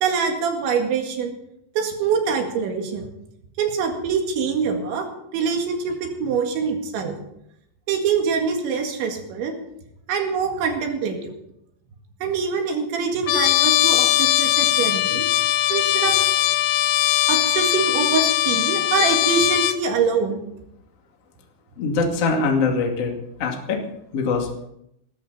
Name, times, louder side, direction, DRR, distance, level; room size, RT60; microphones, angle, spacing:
voice 1, 0.0-1.4 1.8-3.1 3.6-5.1 5.3-7.2 7.9-9.5 10.1-11.3 12.2-15.3 15.7-16.2 17.3-20.4, right 5 dB, 70° right, 3 dB, 4.1 m, -24 dB
Trumpet, 13.3-19.8, left 14 dB, 80° left, 2.5 m, -20 dB
voice 2, 21.8-23.1 23.4-23.8 24.1-24.5, left 4 dB, 40° left, 1 dB, 2.6 m, -22 dB
20.0 x 13.5 x 4.2 m, 0.78 s
omnidirectional pair, 5.7 m